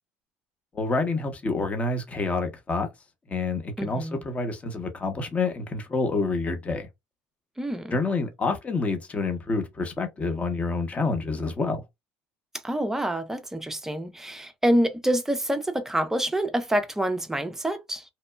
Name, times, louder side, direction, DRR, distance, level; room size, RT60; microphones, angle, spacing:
voice 1, 0.7-2.9 3.3-6.9 7.9-11.8, left 3 dB, 25° left, 0.9 m, -28 dB
voice 2, 3.8-4.2 7.6-8.0 12.6-18.0, right 1 dB, 10° right, 0.5 m, -27 dB
2.9 x 2.1 x 2.2 m
supercardioid pair, 95°, 5 cm